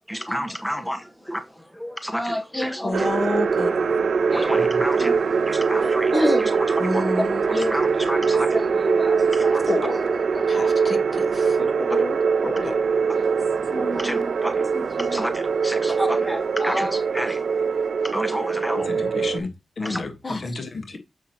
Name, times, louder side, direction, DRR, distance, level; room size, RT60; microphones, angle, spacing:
voice 1, 0.1-1.4 1.7-3.1 4.3-9.7 11.9-12.0 13.1-13.4 13.7-17.5 18.0-18.9 19.9-20.0, equal, 5° left, 1.2 m, -28 dB
voice 2, 2.8-4.1 6.8-7.4 9.7-12.8 20.2-20.4, left 2 dB, 45° left, 1.3 m, -29 dB
sound 1, 2.9-19.4, right 5 dB, 75° right, 0.5 m, -22 dB
voice 3, 18.7-21.0, left 3 dB, 60° left, 1.5 m, -32 dB
7.2 x 5.8 x 3.0 m
cardioid pair, 50°, 0 cm